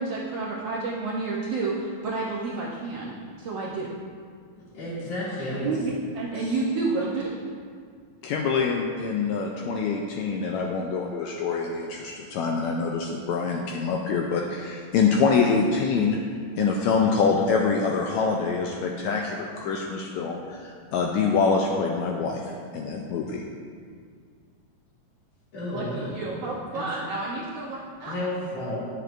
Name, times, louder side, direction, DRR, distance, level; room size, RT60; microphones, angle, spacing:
voice 1, 0.0-3.9 5.6-7.2 25.7-28.1, right 3 dB, 70° right, -5 dB, 1.5 m, -30 dB
voice 2, 4.7-5.8 6.3-6.5 25.5-26.2 26.7-26.9 28.0-28.7, left 1 dB, 50° left, -9 dB, 3.4 m, -32 dB
voice 3, 8.2-16.2 16.6-22.4 22.7-23.4, left 5 dB, 85° left, 0 dB, 1.6 m, -25 dB
11.0 x 7.6 x 2.5 m, 2.1 s
omnidirectional pair, 3.7 m